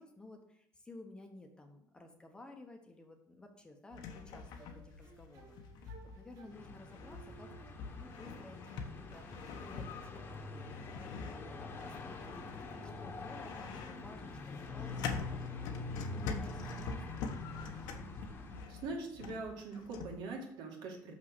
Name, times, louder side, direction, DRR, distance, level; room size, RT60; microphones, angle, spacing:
voice 1, 0.0-9.3 9.6-11.2 11.5-12.5 12.8-17.3, left 2 dB, 10° left, 4 dB, 1.0 m, -55 dB
sound 1, 3.9-20.2, left 5 dB, 75° left, 1.1 m, -45 dB
sound 2, 4.6-8.2 8.7-9.7, right 5 dB, 45° right, 1.8 m, -60 dB
sound 3, 6.5-18.7, left 3 dB, 30° left, 1.2 m, -45 dB
voice 2, 18.7-21.1, right 3 dB, 80° right, 1 dB, 2.2 m, -42 dB
6.4 x 6.3 x 6.1 m, 0.72 s
cardioid pair, 160°, 7 cm